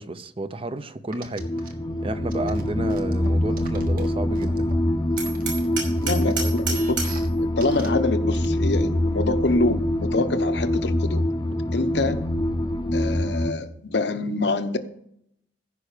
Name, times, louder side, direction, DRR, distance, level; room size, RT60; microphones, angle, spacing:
voice 1, 0.0-1.5 2.0-4.7, right 2 dB, 30° right, 0.6 m, -31 dB
sound 1, 1.1-1.7 2.3-4.7 5.2-7.3 7.6-7.9 8.3-8.5, right 3 dB, 50° right, 1.6 m, -42 dB
sound 2, 1.4-13.5, left 1 dB, 20° left, 0.7 m, -24 dB
Hammer, 5.2-7.3, right 4 dB, 80° right, 5.5 m, -30 dB
voice 2, 6.0-7.0 7.4-11.2 11.7-12.2 12.9-14.8, left 2 dB, 65° left, 0.9 m, -26 dB
14.5 x 5.7 x 6.6 m
head